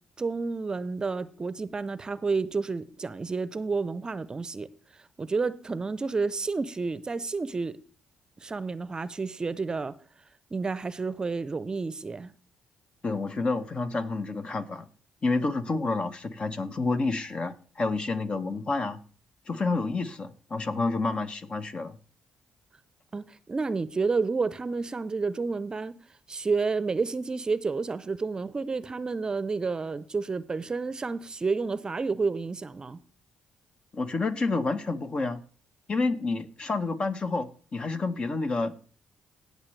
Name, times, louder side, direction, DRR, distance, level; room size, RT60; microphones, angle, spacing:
voice 1, 0.2-4.7 5.2-7.7 8.4-9.9 10.5-12.3 23.1-25.9 26.3-33.0, right 4 dB, 35° right, 0.6 m, -30 dB
voice 2, 13.0-14.9 15.2-19.0 19.5-22.0 33.9-35.4 35.9-38.9, left 3 dB, 45° left, 1.1 m, -29 dB
17.5 x 6.6 x 3.3 m
hypercardioid pair, 50°, 2 cm